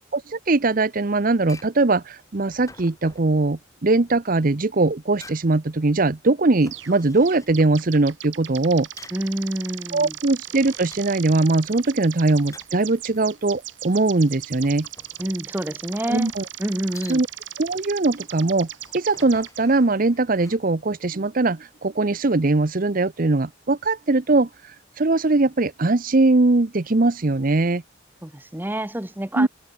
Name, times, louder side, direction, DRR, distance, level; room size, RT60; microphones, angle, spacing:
voice 1, 0.1-8.9 9.9-14.9 16.1-16.4 17.1-17.3 17.6-18.7 18.9-24.5 25.0-27.8 29.4-29.5, right 2 dB, 45° right, 0.8 m, -21 dB
sound 1, 1.3-20.6, left 3 dB, 15° left, 5.6 m, -51 dB
sound 2, 6.7-7.0 7.2-19.6, right 13 dB, 70° right, 2.0 m, -38 dB
voice 2, 9.1-10.2 15.2-16.3 16.6-17.2 28.2-29.5, right 1 dB, 10° right, 0.9 m, -28 dB
head